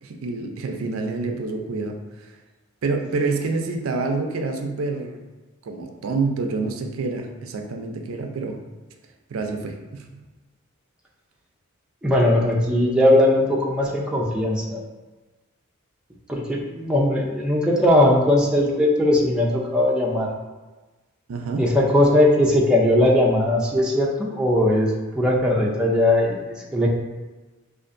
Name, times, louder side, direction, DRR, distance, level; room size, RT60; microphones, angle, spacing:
voice 1, 0.0-2.3 2.8-5.2 5.6-8.6 9.3-10.2 21.3-21.6, right 3 dB, 80° right, 4 dB, 0.4 m, -27 dB
voice 2, 12.0-14.8 16.3-20.3 21.6-26.9, left 1 dB, 5° right, -3 dB, 0.5 m, -19 dB
5.1 x 2.5 x 2.5 m, 1.2 s
head